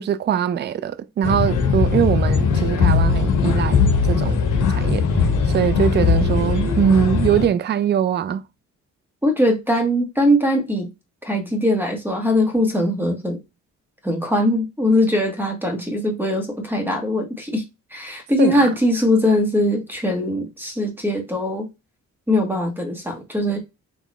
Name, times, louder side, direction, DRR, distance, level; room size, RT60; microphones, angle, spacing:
voice 1, 0.0-3.8 4.1-4.4 4.7-5.1 5.5-8.4 18.4-18.7, right 9 dB, 35° right, 0.4 m, -21 dB
sound 1, 1.2-7.5, left 5 dB, 75° left, 1.3 m, -19 dB
voice 2, 6.0-6.6 9.2-10.9 11.2-13.4 14.0-17.6 17.9-21.7 22.3-23.6, left 1 dB, 5° right, 1.4 m, -21 dB
4.3 x 2.9 x 4.1 m
cardioid pair, 125°, 30 cm